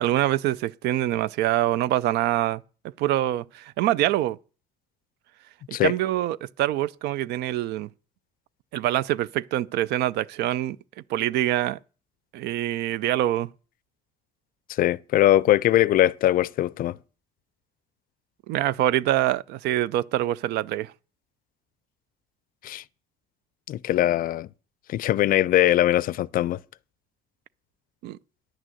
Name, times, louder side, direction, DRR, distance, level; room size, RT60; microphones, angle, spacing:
voice 1, 0.0-2.6 3.0-4.4 5.8-7.9 8.7-10.8 11.1-11.8 12.3-13.5 18.5-20.9 28.0-28.2, right 13 dB, 80° right, 0.4 m, -25 dB
voice 2, 14.8-17.0 22.6-22.8 23.7-24.5 24.9-26.6, left 13 dB, 55° left, 0.4 m, -21 dB
10.0 x 6.3 x 7.6 m
cardioid pair, 110°, 17 cm